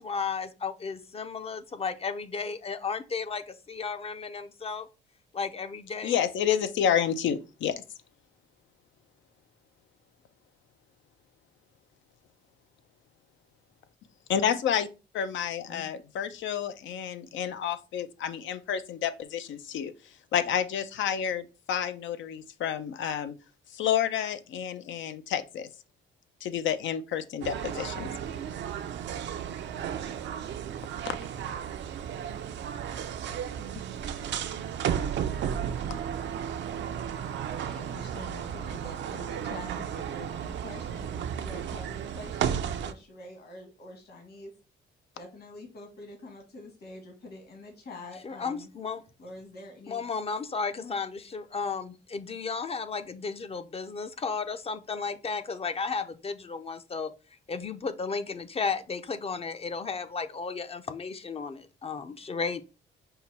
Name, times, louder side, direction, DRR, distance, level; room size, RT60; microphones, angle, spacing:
voice 1, 0.0-4.9 5.3-6.1 48.2-49.0 49.9-57.1 57.5-62.6, left 5 dB, 30° left, 0.5 m, -34 dB
voice 2, 6.0-7.8 14.3-14.9 15.1-19.9 20.3-23.3 23.7-25.7 26.4-28.1 31.0-31.2, left 9 dB, 75° left, 0.6 m, -29 dB
sound 1, 27.4-42.9, right 8 dB, 65° right, 0.5 m, -34 dB
voice 3, 37.7-44.5 45.1-48.7 49.2-50.0 50.8-51.0, left 2 dB, 55° left, 1.6 m, -46 dB
5.6 x 2.2 x 4.2 m
cardioid pair, 90°, 20 cm